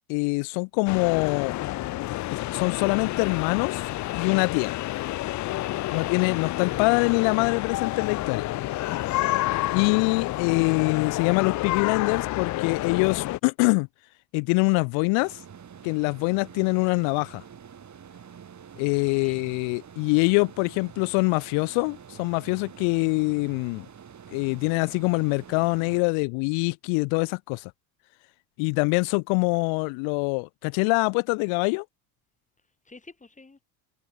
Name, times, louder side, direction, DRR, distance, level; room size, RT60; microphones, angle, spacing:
voice 1, 0.1-1.5 2.3-4.8 5.9-8.5 9.7-13.9 14.3-15.4 15.8-17.4 18.8-23.8 24.3-27.7 28.6-31.8, left 33 dB, 75° left, 1.3 m, -24 dB
sound 1, 0.9-13.4, left 17 dB, 40° left, 0.4 m, -29 dB
voice 2, 9.1-9.4 18.9-19.5 32.8-33.6, left 3 dB, 15° left, 5.8 m, -50 dB
sound 2, 15.2-26.0, right 7 dB, 35° right, 7.3 m, -47 dB
supercardioid pair, 95°, 46 cm